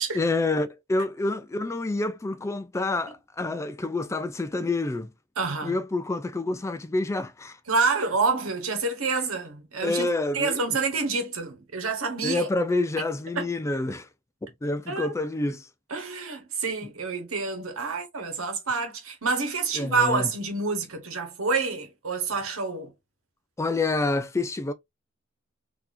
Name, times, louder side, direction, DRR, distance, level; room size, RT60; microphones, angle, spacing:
voice 1, 0.1-5.1 5.6-7.6 9.8-10.6 12.2-14.1 14.6-15.7 19.7-20.3 23.6-24.7, left 2 dB, 15° left, 0.3 m, -28 dB
voice 2, 5.4-5.7 7.7-10.1 10.3-12.5 13.3-13.5 14.9-15.1 15.9-22.9, right 4 dB, 85° right, 1.2 m, -28 dB
4.0 x 2.8 x 2.6 m
head